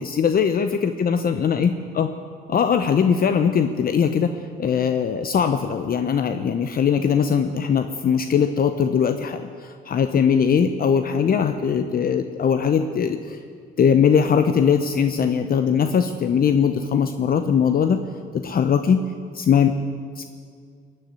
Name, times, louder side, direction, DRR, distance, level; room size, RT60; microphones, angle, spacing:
voice 1, 0.0-2.1 2.5-4.3 4.6-9.5 9.9-13.4 13.8-18.0 18.3-19.0 19.3-19.8 20.2-20.3, left 7 dB, 50° left, 8 dB, 0.7 m, -20 dB
18.5 x 6.6 x 9.7 m, 2.1 s
cardioid pair, 90°, 20 cm